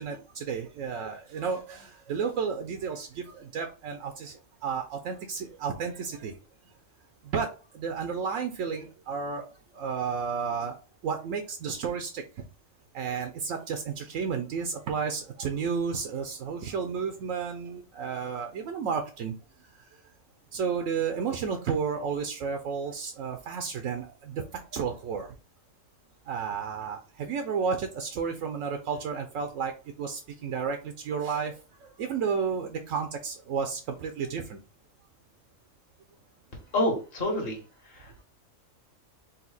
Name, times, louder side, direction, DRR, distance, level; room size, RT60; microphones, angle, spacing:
voice 1, 0.0-6.3 7.2-9.5 9.7-10.8 11.0-12.2 12.9-19.3 19.6-20.0 20.5-25.3 26.3-34.6, right 6 dB, 80° right, 5 dB, 1.0 m, -32 dB
voice 2, 36.7-37.6 37.9-38.2, left 1 dB, 50° left, 0 dB, 1.7 m, -28 dB
4.1 x 2.5 x 4.0 m, 0.34 s
omnidirectional pair, 1.4 m